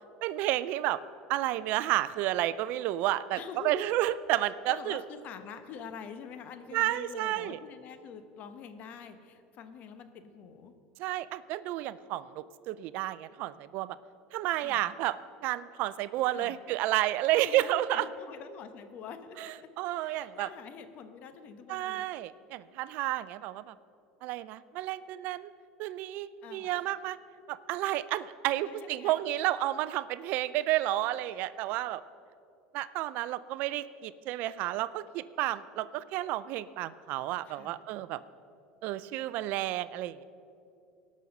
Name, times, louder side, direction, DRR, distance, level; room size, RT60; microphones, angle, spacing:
voice 1, 0.2-1.0 1.3-3.4 3.6-5.0 6.7-7.6 11.0-14.0 14.3-15.2 15.4-18.1 19.4-19.5 19.8-20.5 21.7-23.7 24.2-25.5 25.8-27.2 27.5-32.0 32.7-38.2 38.8-40.2, right 15 dB, 60° right, 17 dB, 0.4 m, -31 dB
voice 2, 3.4-3.9 4.7-10.7 14.6-14.9 16.3-16.6 17.3-19.7 20.0-22.1 26.4-26.9 28.6-29.2 31.3-31.4 31.7-31.8 37.5-37.8, left 6 dB, 50° left, 9 dB, 1.0 m, -46 dB
18.0 x 6.2 x 5.3 m, 2.6 s
supercardioid pair, 100°, 3 cm